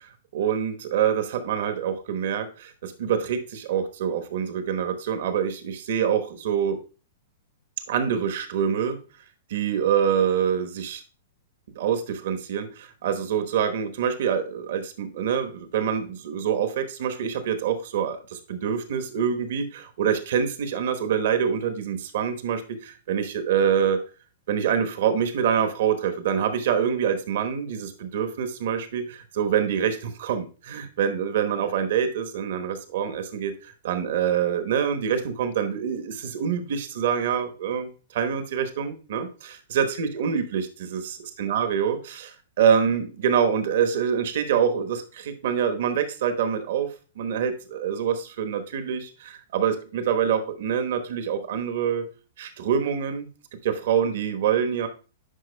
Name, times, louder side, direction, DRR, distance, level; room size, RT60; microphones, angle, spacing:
voice 1, 0.3-6.8 7.9-9.0 9.5-11.0 11.7-24.0 24.5-46.9 47.2-52.0 52.4-53.3 53.6-54.9, right 8 dB, 65° right, 9 dB, 1.0 m, -25 dB
10.0 x 4.9 x 2.2 m, 0.35 s
hypercardioid pair, 120°, 0 cm